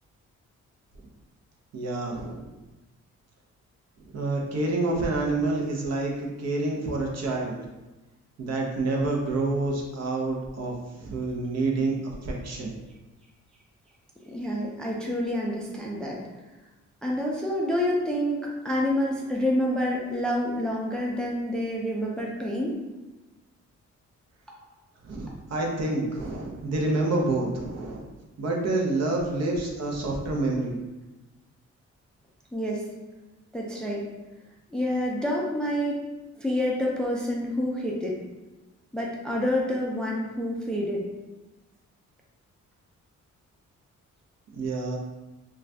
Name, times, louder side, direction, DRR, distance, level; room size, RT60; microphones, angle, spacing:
voice 1, 1.7-2.5 4.1-7.6 8.4-12.8 25.0-28.1 28.4-30.7 44.5-45.0, right 2 dB, 60° right, -1 dB, 0.7 m, -28 dB
voice 2, 14.3-16.2 17.0-22.7 32.5-32.9 33.5-34.0 34.7-35.9 36.4-38.2 38.9-41.0, left 1 dB, 5° left, -2 dB, 0.3 m, -28 dB
2.5 x 2.3 x 3.3 m, 1.1 s
cardioid pair, 125°, 29 cm